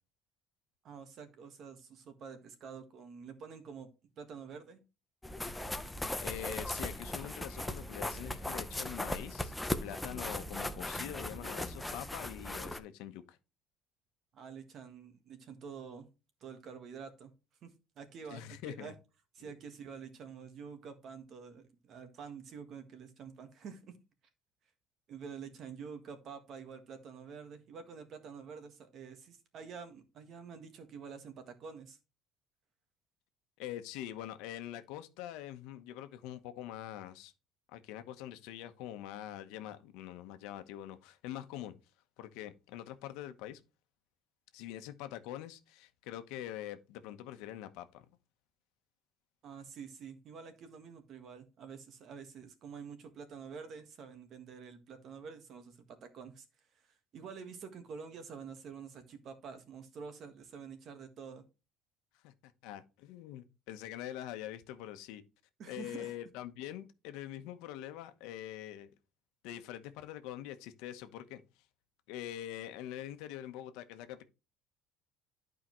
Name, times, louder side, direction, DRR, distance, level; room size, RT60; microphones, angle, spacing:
voice 1, 0.8-3.9 4.2-4.8 14.3-16.1 16.4-17.3 17.6-18.9 19.3-23.9 25.1-32.0 49.4-56.5 56.7-61.4 65.6-66.1, right 6 dB, 40° right, 1.5 m, -48 dB
sound 1, 5.2-12.8, left 1 dB, 5° left, 0.6 m, -38 dB
voice 2, 6.2-13.4 18.3-18.9 19.4-19.5 33.6-37.3 37.7-41.8 42.2-43.6 44.5-48.0 62.2-65.2 65.6-68.9 69.4-71.4 72.1-74.2, left 12 dB, 85° left, 1.0 m, -44 dB
11.5 x 4.9 x 3.1 m
cardioid pair, 165°, 0 cm